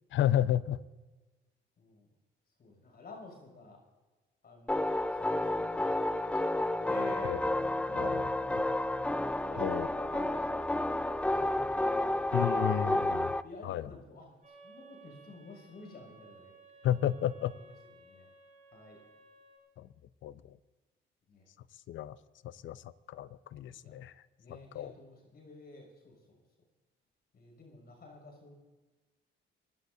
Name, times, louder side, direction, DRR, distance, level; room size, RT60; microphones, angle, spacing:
voice 1, 0.1-0.8 7.2-7.4 8.0-8.2 9.6-9.9 12.3-13.3 13.6-13.9 16.8-17.5 19.8-19.9 20.2-20.6 21.9-22.2 22.4-24.1 24.5-24.9, left 11 dB, 75° left, 16 dB, 0.6 m, -32 dB
voice 2, 1.8-2.1 2.6-3.8 4.4-6.6 6.9-12.7 13.4-16.5 18.0-18.3 18.7-19.0 21.3-21.4 23.6-23.9 24.4-26.4 27.3-28.5, left 2 dB, 55° left, 1 dB, 6.5 m, -50 dB
sound 1, 4.7-13.4, left 1 dB, 5° left, 0.4 m, -31 dB
sound 2, 14.4-19.6, right 2 dB, 40° right, 6.2 m, -57 dB
25.0 x 16.5 x 2.7 m, 1.2 s
cardioid pair, 90°, 20 cm